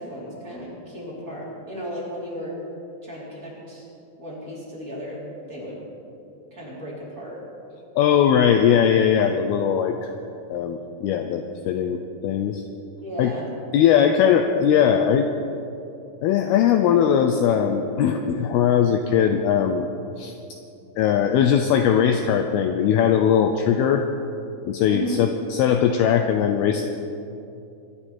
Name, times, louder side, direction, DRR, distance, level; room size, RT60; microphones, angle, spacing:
voice 1, 0.0-2.6 3.0-3.9 4.2-5.2 5.5-5.9 6.5-7.4 13.0-13.5 24.9-25.2, equal, 20° right, -7 dB, 3.9 m, -34 dB
voice 2, 8.0-10.1 10.5-12.6 13.2-13.3 13.7-15.3 16.2-19.9 20.2-20.3 21.0-24.1 24.6-26.9, left 8 dB, 85° left, 6 dB, 2.2 m, -20 dB
24.5 x 11.5 x 4.5 m, 2.7 s
omnidirectional pair, 5.3 m